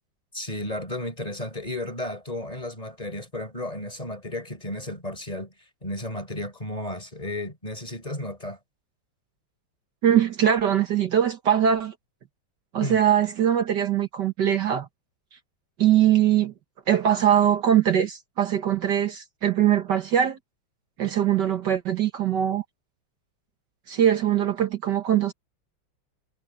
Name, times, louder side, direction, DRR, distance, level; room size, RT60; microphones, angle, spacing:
voice 1, 0.3-5.5 5.8-8.6 12.8-13.0, left 1 dB, 20° left, 4.4 m, -33 dB
voice 2, 10.0-11.9 12.7-14.9 15.8-16.5 16.9-20.4 21.0-22.6 23.9-25.3, right 10 dB, 65° right, 1.9 m, -22 dB
omnidirectional pair, 2.1 m